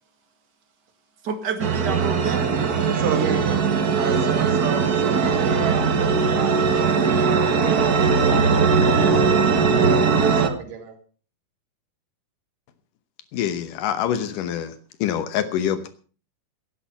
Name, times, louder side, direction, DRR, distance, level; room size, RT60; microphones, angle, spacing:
voice 1, 1.2-2.5 4.2-4.7 5.1-5.3, right 5 dB, 35° right, 2.1 m, -30 dB
sound 1, 1.6-10.5, right 5 dB, 55° right, 1.0 m, -19 dB
voice 2, 2.9-8.5 9.0-10.9, right 6 dB, 75° right, 3.9 m, -33 dB
voice 3, 13.3-14.7 15.0-15.9, left 9 dB, 80° left, 2.6 m, -25 dB
17.0 x 10.5 x 5.7 m
omnidirectional pair, 3.8 m